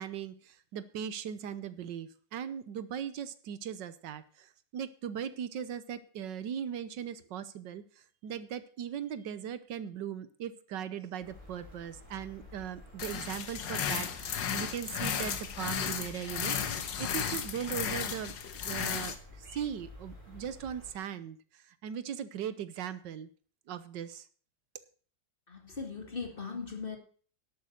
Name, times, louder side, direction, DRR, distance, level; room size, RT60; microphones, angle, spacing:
voice 1, 0.0-18.3 18.6-23.3 23.7-24.3, right 8 dB, 80° right, 14 dB, 1.6 m, -39 dB
sound 1, 11.2-20.9, left 2 dB, 55° left, 4.9 m, -51 dB
sound 2, 13.0-19.2, left 8 dB, 90° left, 1.9 m, -34 dB
voice 2, 25.5-27.0, left 5 dB, 30° left, 4 dB, 2.3 m, -39 dB
11.5 x 8.6 x 6.5 m, 0.43 s
omnidirectional pair, 1.9 m